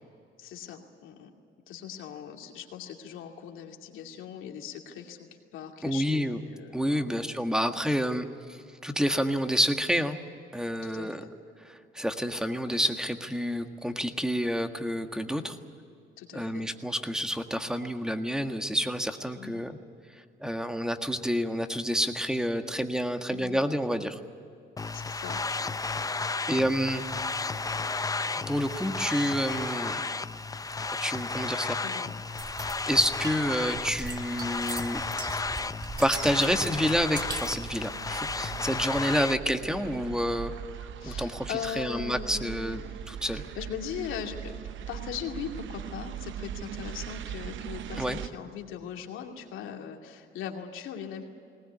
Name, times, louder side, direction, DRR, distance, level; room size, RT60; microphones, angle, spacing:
voice 1, 0.4-1.3 1.7-5.3 5.5-7.1 10.8-11.3 16.2-16.7 19.4-19.7 23.3-23.6 24.9-25.4 27.2-27.3 31.8-32.1 41.0-42.9 43.3-44.5 44.9-51.2, left 8 dB, 90° left, 3 dB, 2.5 m, -40 dB
voice 2, 5.8-6.4 6.7-10.2 10.5-11.2 11.6-15.6 16.3-19.8 20.4-24.2 26.5-27.0 28.5-30.0 31.0-31.8 32.9-35.0 36.0-40.5 41.0-42.8 43.1-43.4 48.0-48.2, equal, 5° right, 6 dB, 1.6 m, -29 dB
sound 1, 24.8-39.4, left 3 dB, 15° left, 0.6 m, -33 dB
sound 2, 32.4-37.7, right 3 dB, 20° right, 2.0 m, -40 dB
sound 3, 36.1-48.3, right 9 dB, 75° right, 0.8 m, -40 dB
20.0 x 19.0 x 9.7 m, 2.5 s
cardioid pair, 90°, 20 cm